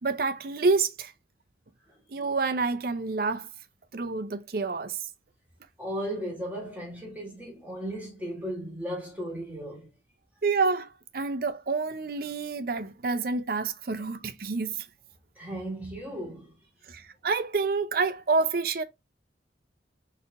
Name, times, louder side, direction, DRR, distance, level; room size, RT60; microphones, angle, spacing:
voice 1, 0.0-1.1 2.1-3.5 3.9-5.0 10.4-14.9 16.9-18.8, right 4 dB, 50° right, 0.5 m, -28 dB
voice 2, 5.8-9.9 15.4-16.5, equal, 10° right, 1.7 m, -36 dB
4.1 x 3.6 x 2.4 m
head